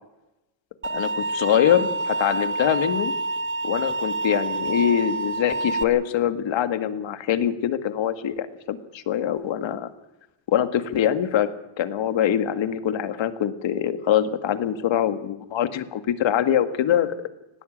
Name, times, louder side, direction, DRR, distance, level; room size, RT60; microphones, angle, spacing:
sound 1, 0.8-5.8, right 2 dB, 25° right, 1.4 m, -27 dB
voice 1, 0.9-3.1 3.6-9.9 10.5-11.5 11.8-17.1, left 10 dB, 75° left, 11 dB, 2.0 m, -23 dB
19.5 x 18.0 x 8.8 m, 0.94 s
cardioid pair, 120°, 46 cm